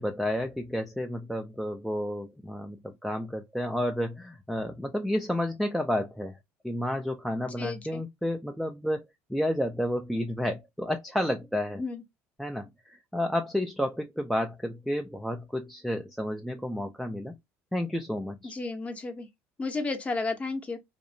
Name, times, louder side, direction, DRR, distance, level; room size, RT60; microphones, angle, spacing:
voice 1, 0.0-6.4 6.6-9.0 9.3-11.8 12.4-17.3 17.7-18.5, left 1 dB, ahead, 0.3 m, -31 dB
voice 2, 7.6-8.0 11.8-12.0 18.4-19.3 19.6-20.8, left 3 dB, 20° left, 0.7 m, -32 dB
2.6 x 2.0 x 2.6 m
supercardioid pair, 110°, 6 cm